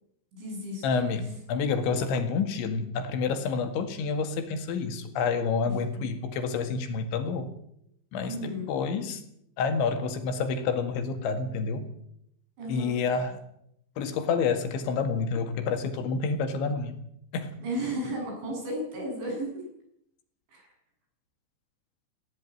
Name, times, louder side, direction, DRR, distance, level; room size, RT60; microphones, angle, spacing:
voice 1, 0.3-0.9 5.7-6.1 8.2-8.7 12.6-13.0 17.6-19.6 20.5-20.7, equal, 75° right, 1 dB, 10.0 m, -34 dB
voice 2, 0.8-7.5 8.1-9.2 9.6-11.9 12.7-13.4 14.0-17.0 17.3-17.5, left 5 dB, 80° left, 8 dB, 4.3 m, -28 dB
18.5 x 16.0 x 9.2 m, 0.75 s
omnidirectional pair, 5.3 m